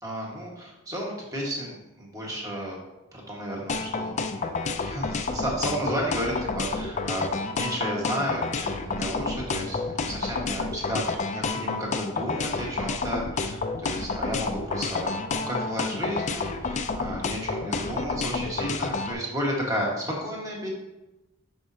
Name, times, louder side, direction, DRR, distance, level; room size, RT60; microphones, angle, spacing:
voice 1, 0.0-2.8 3.1-20.7, equal, 15° right, -3 dB, 1.5 m, -32 dB
sound 1, 3.7-19.1, left 4 dB, 30° left, 0.4 m, -29 dB
10.0 x 5.3 x 2.8 m, 0.99 s
head